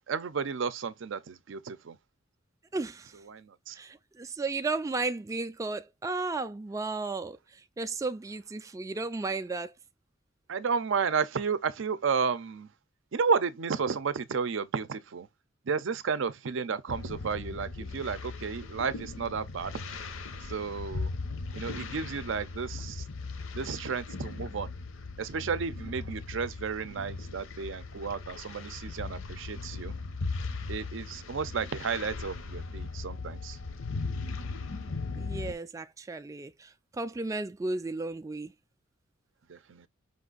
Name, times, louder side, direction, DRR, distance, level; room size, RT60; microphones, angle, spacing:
voice 1, 0.1-2.0 3.3-3.8 10.5-12.7 13.1-15.3 15.7-19.7 20.5-21.1 21.5-23.0 23.6-24.7 25.2-30.0 30.7-33.6 39.5-39.9, right 5 dB, 70° right, 0.5 m, -32 dB
voice 2, 2.7-3.2 3.7-9.7 35.2-38.5, right 3 dB, 15° right, 0.3 m, -34 dB
sound 1, 16.9-35.5, left 3 dB, 80° left, 0.8 m, -38 dB
5.3 x 2.5 x 3.9 m
head